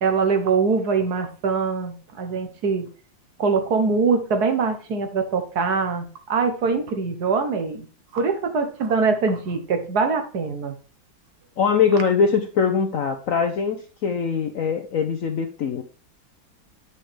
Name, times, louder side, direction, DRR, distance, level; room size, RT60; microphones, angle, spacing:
voice 1, 0.0-2.9 3.4-7.9 8.1-10.8, right 5 dB, 60° right, 6 dB, 1.4 m, -23 dB
voice 2, 11.6-15.8, left 6 dB, 65° left, 6 dB, 0.8 m, -22 dB
9.2 x 5.7 x 3.3 m, 0.38 s
omnidirectional pair, 2.1 m